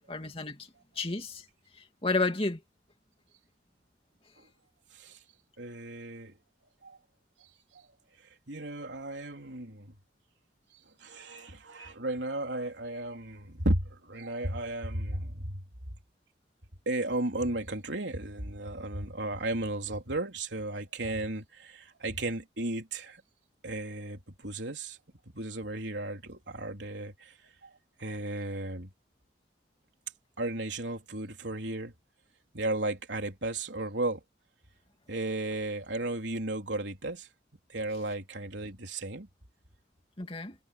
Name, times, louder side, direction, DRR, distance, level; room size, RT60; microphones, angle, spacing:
voice 1, 0.1-0.7 1.0-1.4 2.0-2.6 40.2-40.5, left 3 dB, 30° left, 2.7 m, -31 dB
voice 2, 5.6-6.3 6.8-7.0 7.7-7.8 8.5-9.9 11.0-15.6 16.9-23.2 23.6-25.0 25.3-27.3 27.6-27.7 28.0-28.9 30.4-31.9 32.5-34.2 35.1-37.3 37.7-39.3, right 2 dB, 80° right, 3.7 m, -34 dB
head